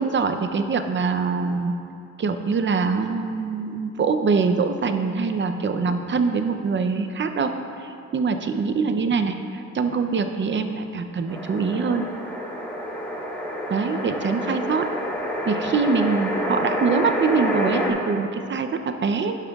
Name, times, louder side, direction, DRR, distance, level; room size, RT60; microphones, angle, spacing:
voice 1, 0.0-1.7 2.2-7.5 7.8-12.1 13.7-14.9 15.5-19.4, right 5 dB, 40° right, 7 dB, 0.6 m, -24 dB
sound 1, 11.3-17.9, equal, 5° left, 2.0 m, -28 dB
11.0 x 11.0 x 2.4 m, 2.6 s
cardioid pair, 90°, 30 cm